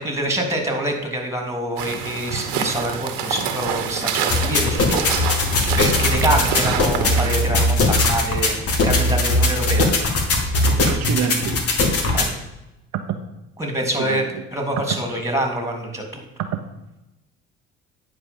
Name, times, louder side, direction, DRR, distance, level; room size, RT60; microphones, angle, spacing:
voice 1, 0.0-5.4 5.7-8.6 8.8-9.9 12.1-12.3 13.6-16.2, right 1 dB, 10° right, 3 dB, 3.1 m, -25 dB
sound 1, 1.8-7.3, right 7 dB, 80° right, 1.4 m, -26 dB
sound 2, 4.3-12.3, left 2 dB, 50° left, 2.4 m, -20 dB
voice 2, 10.6-11.6 12.9-13.2 14.0-14.4 16.4-16.6, right 9 dB, 60° right, 5 dB, 0.9 m, -27 dB
9.5 x 5.1 x 7.3 m, 0.93 s
hypercardioid pair, 70°, 30 cm